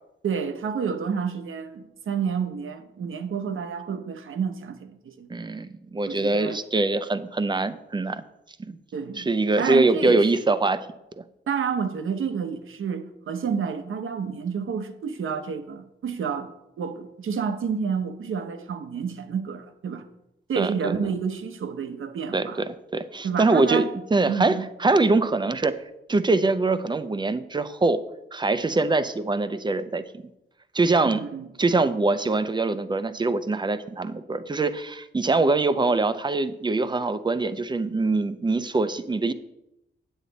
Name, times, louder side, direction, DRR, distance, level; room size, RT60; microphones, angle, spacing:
voice 1, 0.2-5.3 6.1-6.6 8.9-9.3 9.6-10.3 11.5-16.5 16.8-20.1 20.5-22.6 23.2-23.9 24.3-24.6 31.0-31.5, right 6 dB, 80° right, 0.9 m, -29 dB
voice 2, 5.3-8.2 8.6-8.8 9.2-10.9 11.2-11.3 20.6-21.1 22.3-22.5 22.9-23.9 24.1-25.8 26.1-28.0 28.3-30.0 30.7-31.2 31.6-39.3, right 3 dB, 20° right, 0.5 m, -23 dB
9.0 x 8.3 x 4.0 m
wide cardioid pair, 130°, 21 cm